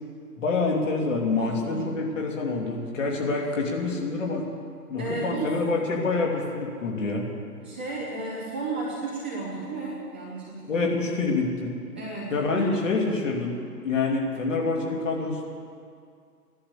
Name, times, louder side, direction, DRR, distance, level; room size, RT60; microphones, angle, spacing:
voice 1, 0.4-4.5 4.9-7.3 10.7-11.7 12.3-15.4, left 3 dB, 50° left, -1 dB, 2.9 m, -26 dB
voice 2, 1.4-1.8 5.0-5.5 7.6-11.3 12.0-12.9, right 3 dB, 5° right, -10 dB, 0.6 m, -34 dB
16.0 x 11.5 x 6.9 m, 2.3 s
figure-of-eight pair, 140°, 49 cm